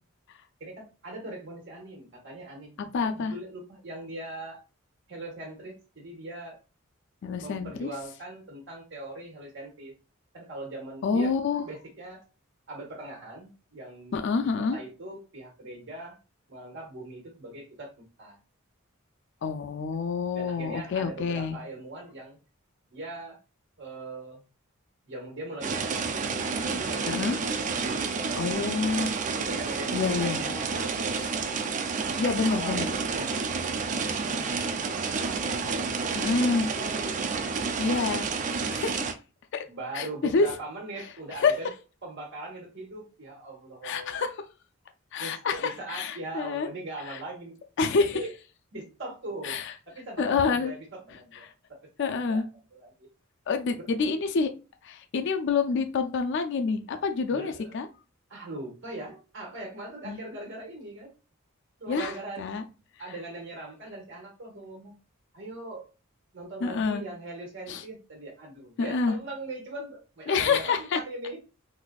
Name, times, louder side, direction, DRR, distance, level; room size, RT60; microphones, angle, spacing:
voice 1, 0.6-4.6 5.1-6.6 7.4-9.9 10.3-11.3 11.6-12.2 12.7-16.2 16.5-17.9 18.2-18.4 20.3-22.4 22.9-23.4 23.8-24.4 25.1-26.2 26.6-27.4 27.7-29.0 29.3-31.3 32.4-37.8 39.6-41.7 42.0-44.3 45.2-47.6 48.0-48.3 48.7-49.6 49.9-51.5 52.0-52.5 52.7-52.9 53.8-53.9 57.3-57.8 58.3-61.1 61.8-62.5 63.0-64.9 65.3-65.8 66.3-71.4, right 2 dB, 60° right, 0 dB, 1.4 m, -41 dB
voice 2, 2.8-3.3 7.2-7.9 11.0-11.6 14.1-14.8 19.4-21.6 27.1-27.4 28.4-29.1 29.9-30.4 32.2-32.9 36.2-36.7 37.8-38.3 38.7-39.1 39.5-39.6 39.9-40.5 41.4-41.6 43.8-44.3 45.1-46.7 47.8-48.2 49.4-49.7 50.2-50.7 52.0-52.4 53.5-54.5 54.8-57.9 60.1-60.2 61.9-62.1 62.4-62.6 66.6-67.0 67.7-67.8 68.8-69.2 70.3-71.0, left 4 dB, 60° left, 6 dB, 0.4 m, -27 dB
sound 1, 25.6-39.1, right 4 dB, 35° right, 0.3 m, -30 dB
4.0 x 2.5 x 2.3 m, 0.32 s
head